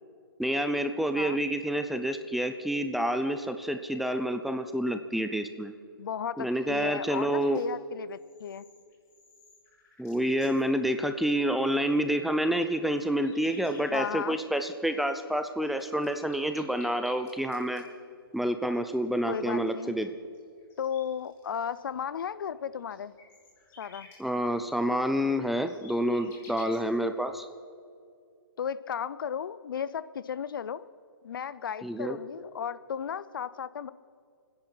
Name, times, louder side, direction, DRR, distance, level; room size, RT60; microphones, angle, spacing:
voice 1, 0.4-5.7 6.4-7.6 10.0-17.8 18.3-20.1 24.2-27.5 31.8-32.2, equal, ahead, 8 dB, 0.5 m, -28 dB
voice 2, 6.0-8.7 13.9-14.4 19.3-20.0 20.8-23.1 23.8-24.1 28.6-30.9 31.2-33.9, left 8 dB, 65° left, 16 dB, 0.6 m, -35 dB
sound 1, 7.4-7.7 8.0-10.6 12.6-12.7 13.0-14.3 14.6-14.7 14.9-15.0 15.3-17.9 18.7-18.8 19.0-19.1 19.4-19.7 20.0-20.1 20.3-21.9 22.1-24.2 24.7-24.8 25.0-25.1 25.3-27.1, left 4 dB, 20° left, 4.0 m, -55 dB
30.0 x 10.5 x 4.1 m, 2.3 s
hypercardioid pair, 145°, 12 cm